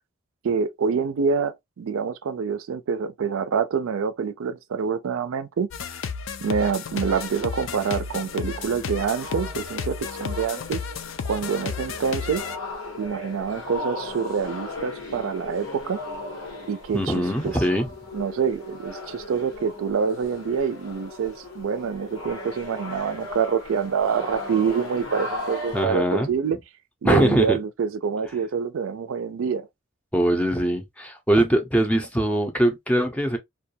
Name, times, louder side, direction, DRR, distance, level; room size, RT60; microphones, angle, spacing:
voice 1, 0.4-5.7 6.4-10.8 11.2-12.4 13.0-16.0 16.7-17.6 18.1-26.6 27.0-29.7, right 6 dB, 80° right, 0.4 m, -26 dB
sound 1, 5.7-12.6, left 6 dB, 70° left, 0.4 m, -33 dB
sound 2, 6.9-25.9, left 2 dB, 90° left, 1.0 m, -37 dB
voice 2, 16.9-17.9 25.7-26.3 27.0-27.6 30.1-33.4, right 1 dB, 5° left, 0.5 m, -22 dB
2.2 x 2.2 x 2.6 m
head